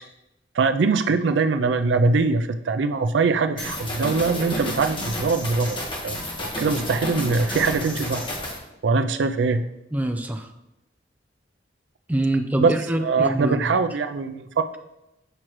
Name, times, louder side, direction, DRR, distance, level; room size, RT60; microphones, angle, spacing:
voice 1, 0.5-5.8 6.0-6.2 6.6-8.3 8.8-9.6 12.6-14.7, right 4 dB, 90° right, 9 dB, 0.4 m, -22 dB
sound 1, 3.6-8.6, left 1 dB, 30° left, 1.4 m, -31 dB
voice 2, 9.9-10.5 12.1-13.7, right 1 dB, 10° right, 5 dB, 0.5 m, -25 dB
8.0 x 5.9 x 3.1 m, 0.90 s
head